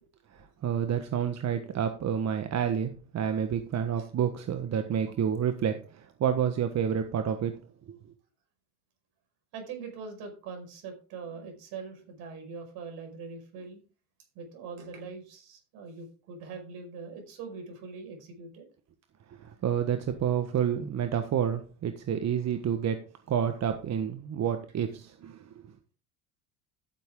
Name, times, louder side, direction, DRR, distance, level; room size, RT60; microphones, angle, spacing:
voice 1, 0.3-7.5 7.9-8.0 19.4-23.0 23.3-25.6, right 8 dB, 40° right, 7 dB, 1.4 m, -29 dB
voice 2, 9.5-13.8 14.4-18.7, right 5 dB, 65° right, 3 dB, 5.3 m, -42 dB
13.0 x 7.8 x 3.7 m, 0.37 s
hypercardioid pair, 75°, 40 cm